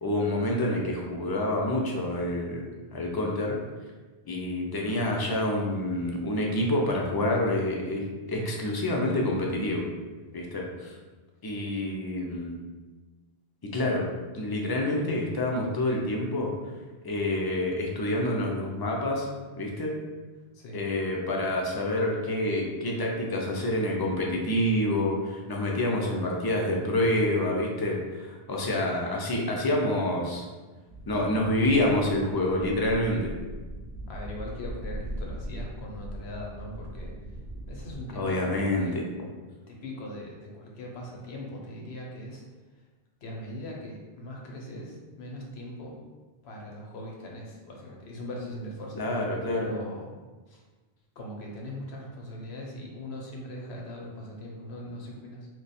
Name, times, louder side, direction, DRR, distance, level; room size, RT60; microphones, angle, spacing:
voice 1, 0.0-2.6 2.9-3.6 4.3-9.8 10.3-10.9 11.4-12.6 13.6-14.1 14.3-16.5 17.0-19.3 19.6-20.0 20.7-30.5 31.1-33.3 38.1-39.0 49.0-49.7, left 1 dB, 35° left, -1 dB, 0.4 m, -27 dB
voice 2, 20.5-20.9 34.1-37.4 37.7-38.4 38.7-38.9 39.7-42.4 43.2-46.0 46.4-50.2 50.5-50.6 51.2-55.5, left 1 dB, 90° left, -1 dB, 1.0 m, -40 dB
sound 1, 30.9-38.0, right 1 dB, 40° right, 0.6 m, -40 dB
3.2 x 2.2 x 4.1 m, 1.3 s
omnidirectional pair, 1.0 m